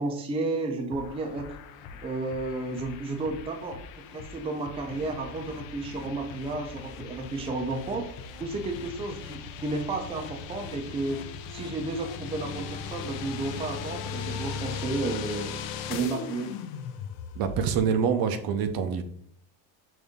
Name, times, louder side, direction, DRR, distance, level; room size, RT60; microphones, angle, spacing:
voice 1, 0.0-1.5 2.0-3.8 4.1-8.0 8.4-11.2 11.5-15.5 15.9-16.5, right 2 dB, 15° right, 4 dB, 0.4 m, -32 dB
sound 1, 0.9-17.8, left 6 dB, 85° left, 0.6 m, -39 dB
voice 2, 17.4-19.0, right 7 dB, 55° right, 8 dB, 0.6 m, -26 dB
5.3 x 2.6 x 3.5 m, 0.67 s
cardioid pair, 145°, 43 cm